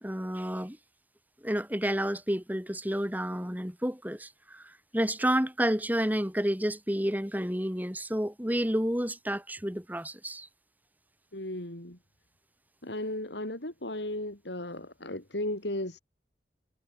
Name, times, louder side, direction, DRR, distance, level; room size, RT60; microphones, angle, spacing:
voice 1, 0.0-0.8 1.4-10.5, equal, 10° right, 3.4 m, -30 dB
voice 2, 11.3-12.0 12.8-16.0, left 1 dB, 80° left, 6.0 m, -35 dB
head